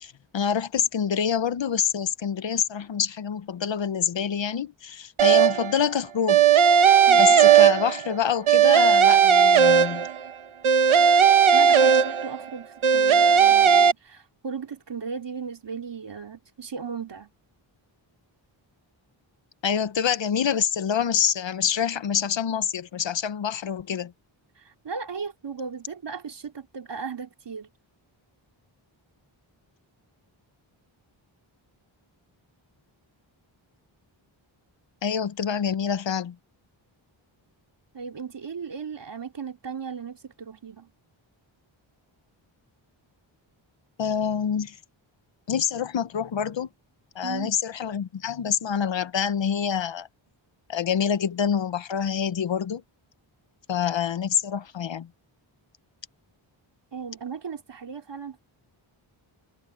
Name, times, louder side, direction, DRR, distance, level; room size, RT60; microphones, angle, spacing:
voice 1, 0.0-6.4 7.1-10.1 19.6-24.1 35.0-36.4 44.0-44.8 45.5-46.7 47.1-50.1 50.7-52.8 53.7-55.1, left 7 dB, 65° left, 1.0 m, -26 dB
sound 1, 5.2-5.8 6.3-8.1 8.5-10.3 10.6-12.4 12.8-13.9, right 7 dB, 80° right, 1.2 m, -17 dB
voice 2, 7.1-7.4 11.5-17.3 24.6-27.7 37.9-40.9 47.2-47.5 56.9-58.4, right 6 dB, 60° right, 3.6 m, -36 dB
wide cardioid pair, 125°, 48 cm